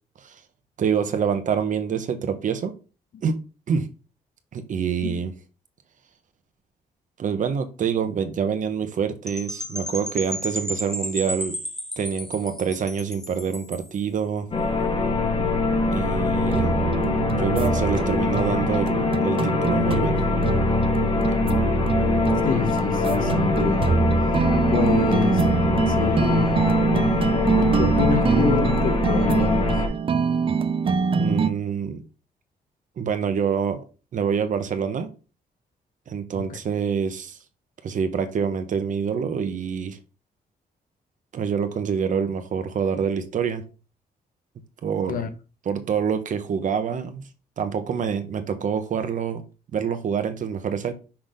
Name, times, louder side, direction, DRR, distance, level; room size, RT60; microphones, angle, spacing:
voice 1, 0.8-2.7 3.2-3.4 3.7-3.9 4.5-5.3 7.2-11.6 12.0-14.5 15.9-16.8 17.4-20.2 31.2-32.0 33.0-33.8 34.1-35.1 36.1-37.4 37.8-40.0 41.3-43.6 44.8-45.2 45.7-47.2 47.6-49.4 49.7-50.9, right 7 dB, 55° right, 1.1 m, -26 dB
Percussion / Wind chime, 9.3-14.0, equal, 5° left, 0.7 m, -33 dB
sound 1, 14.5-29.9, left 3 dB, 35° left, 1.4 m, -23 dB
sound 2, 16.3-31.5, right 5 dB, 35° right, 0.5 m, -24 dB
voice 2, 22.4-23.9 24.7-25.5 25.9-26.8 27.6-29.8 36.4-36.6 45.1-45.3, left 6 dB, 60° left, 1.1 m, -26 dB
5.9 x 4.0 x 5.1 m
wide cardioid pair, 160°, 16 cm